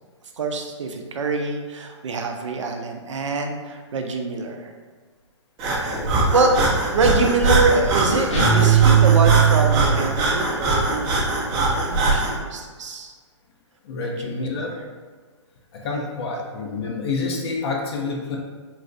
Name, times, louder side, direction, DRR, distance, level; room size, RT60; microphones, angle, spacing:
voice 1, 0.4-4.7 5.7-6.0 6.3-6.5 6.9-11.2 11.8-13.1 14.0-14.6, right 3 dB, 75° right, 4 dB, 0.5 m, -25 dB
Breathing, 5.6-12.4, right 2 dB, 25° right, 0.5 m, -22 dB
sound 1, 8.3-10.0, right 9 dB, 75° left, 1.0 m, -17 dB
voice 2, 13.8-14.7 15.7-18.4, left 3 dB, 55° left, -1 dB, 0.5 m, -28 dB
3.9 x 2.1 x 2.6 m, 1.5 s
hypercardioid pair, 125°, 16 cm